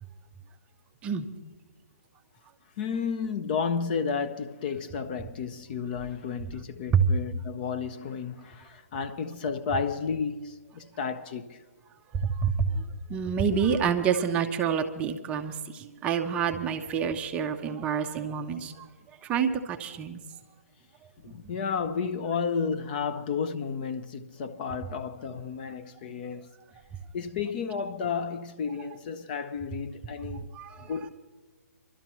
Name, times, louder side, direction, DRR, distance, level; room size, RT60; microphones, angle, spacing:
voice 1, 2.8-11.6 21.2-26.5 27.1-30.5 30.8-31.1, left 6 dB, 35° left, 0.6 m, -32 dB
voice 2, 12.1-12.8 13.1-18.9 19.2-20.2 30.3-31.0, right 6 dB, 15° right, 0.5 m, -28 dB
26.0 x 12.5 x 3.0 m
hypercardioid pair, 155°, 8 cm